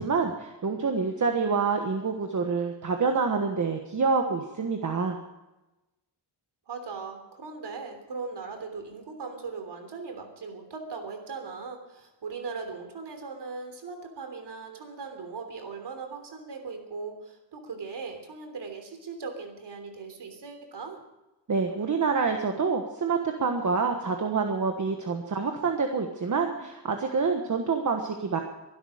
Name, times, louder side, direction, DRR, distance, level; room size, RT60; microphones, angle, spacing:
voice 1, 0.0-5.2 21.5-28.4, right 5 dB, 45° right, 4 dB, 1.4 m, -27 dB
voice 2, 6.7-21.0, right 4 dB, 70° right, 5 dB, 3.3 m, -39 dB
23.0 x 12.5 x 5.0 m, 1.0 s
wide cardioid pair, 175°, 42 cm